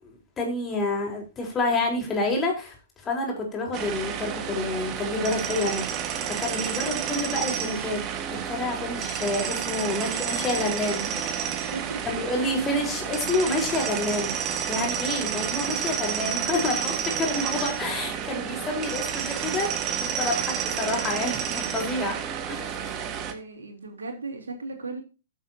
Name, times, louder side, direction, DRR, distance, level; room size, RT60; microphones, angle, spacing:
voice 1, 0.4-2.7 3.0-8.0 8.3-11.7 12.0-14.4 14.7-19.7 19.9-22.2 22.5-22.7, left 2 dB, 20° left, 4.4 m, -28 dB
sound 1, 3.7-23.3, right 8 dB, 30° right, 1.6 m, -30 dB
voice 2, 11.5-12.0 23.2-25.0, right 3 dB, 80° right, 3.3 m, -37 dB
15.5 x 7.4 x 2.8 m
figure-of-eight pair, 115°, 0 cm